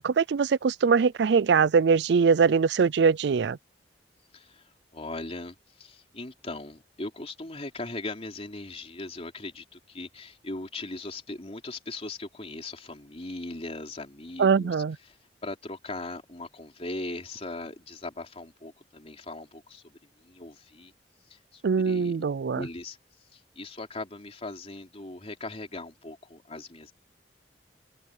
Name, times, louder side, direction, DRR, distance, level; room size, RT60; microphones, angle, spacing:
voice 1, 0.0-3.6 14.4-15.0 21.6-22.6, right 5 dB, 70° right, 0.4 m, -22 dB
voice 2, 4.3-20.9 21.2-22.1 22.5-26.9, left 2 dB, 35° left, 3.5 m, -39 dB
open air
head